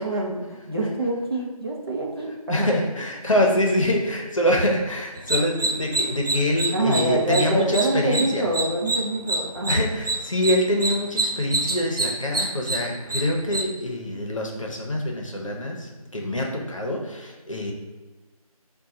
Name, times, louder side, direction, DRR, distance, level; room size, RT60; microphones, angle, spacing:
voice 1, 0.0-2.7 6.7-9.8, right 2 dB, 40° right, -2 dB, 0.7 m, -25 dB
voice 2, 2.5-8.4 9.7-17.7, left 1 dB, 55° left, 0 dB, 0.8 m, -25 dB
sound 1, 5.2-13.6, right 2 dB, 85° right, 0.7 m, -27 dB
3.6 x 2.3 x 4.0 m, 1.2 s
figure-of-eight pair, 170°, 19 cm